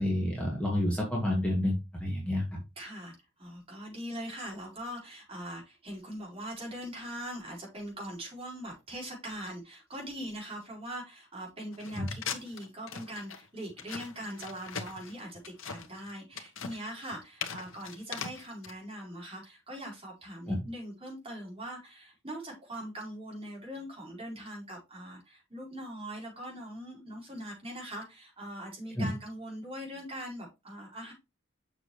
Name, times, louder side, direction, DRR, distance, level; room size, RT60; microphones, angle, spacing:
voice 1, 0.0-2.6 12.0-12.1 20.5-20.6 29.0-29.1, left 1 dB, 5° left, 2.1 m, -29 dB
voice 2, 2.8-31.1, equal, 30° right, 4.5 m, -41 dB
sound 1, 11.7-18.7, left 6 dB, 80° left, 1.1 m, -40 dB
6.9 x 6.3 x 3.1 m
head